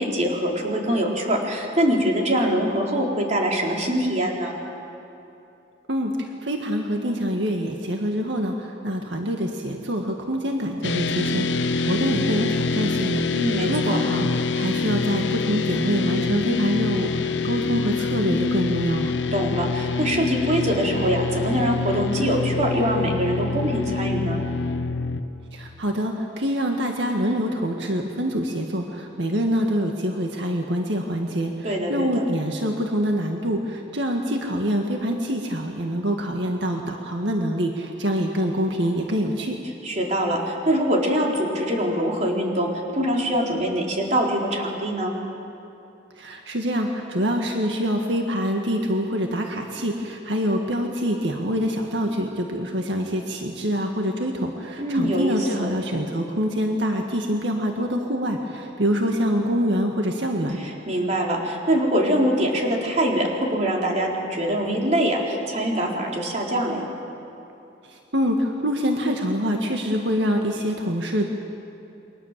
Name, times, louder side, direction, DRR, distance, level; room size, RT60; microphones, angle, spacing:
voice 1, 0.0-4.6 13.3-14.0 19.3-24.4 31.6-32.2 39.8-45.1 54.8-55.7 60.6-66.8, equal, 40° right, -1 dB, 4.1 m, -23 dB
voice 2, 5.9-13.2 13.6-14.3 14.6-19.2 25.5-39.6 46.2-60.6 68.1-71.3, equal, 80° right, 2 dB, 1.9 m, -25 dB
sound 1, 10.8-25.2, left 4 dB, 90° left, 1.0 m, -25 dB
29.0 x 23.5 x 7.6 m, 2.8 s
head